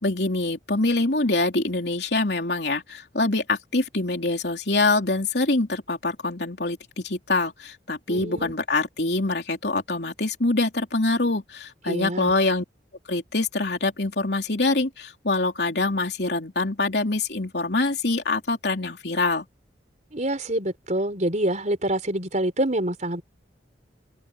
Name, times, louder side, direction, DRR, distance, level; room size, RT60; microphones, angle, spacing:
voice 1, 0.0-12.6 13.1-19.4, left 2 dB, 65° left, 3.6 m, -25 dB
voice 2, 8.1-8.6 11.9-12.3 20.1-23.2, right 1 dB, 40° right, 4.9 m, -26 dB
head